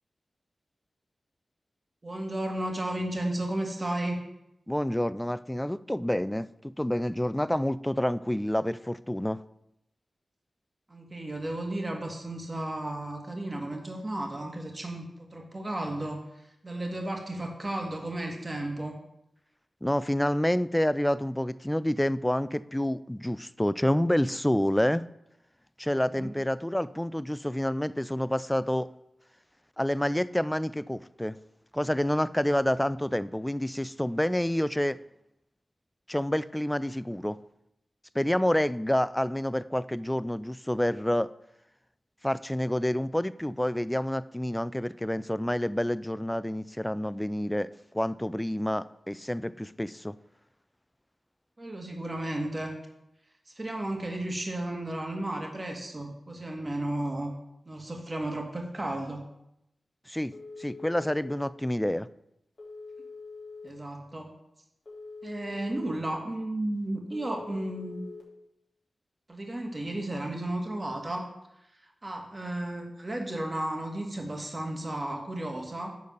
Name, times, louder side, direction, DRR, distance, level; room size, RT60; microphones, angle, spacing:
voice 1, 2.0-4.2 10.9-16.2 16.6-19.0 26.1-26.3 51.6-52.7 53.5-57.3 57.7-59.2 63.6-64.3 65.2-68.1 69.3-71.3 72.0-75.9, right 1 dB, 30° right, 1 dB, 1.9 m, -33 dB
voice 2, 4.7-9.4 19.8-25.0 25.8-28.9 29.8-31.4 31.7-35.0 36.1-37.4 38.1-41.3 42.2-50.2 60.1-60.3 60.6-62.1, left 1 dB, 10° left, 17 dB, 0.3 m, -28 dB
Telephone, 60.3-61.4 62.6-63.7 64.9-66.0 67.1-68.2, left 4 dB, 40° left, 3.0 m, -44 dB
10.5 x 4.0 x 6.8 m, 0.84 s
wide cardioid pair, 90°, 0 cm